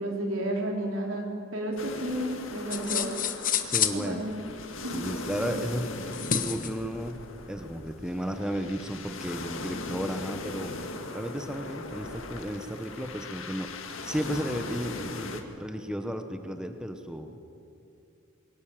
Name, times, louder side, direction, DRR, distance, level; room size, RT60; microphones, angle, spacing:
voice 1, 0.0-3.2 3.9-4.3 4.8-5.1 5.4-5.5, right 1 dB, 75° right, 0 dB, 4.1 m, -32 dB
sound 1, 1.8-15.4, left 3 dB, 70° left, 1.9 m, -39 dB
sound 2, 2.7-4.0 6.1-6.7, left 9 dB, 40° left, 1.2 m, -28 dB
voice 2, 3.6-4.2 4.9-5.9 6.3-7.2 7.5-17.4, equal, 5° right, 6 dB, 1.0 m, -34 dB
22.5 x 18.5 x 7.6 m, 2.7 s
head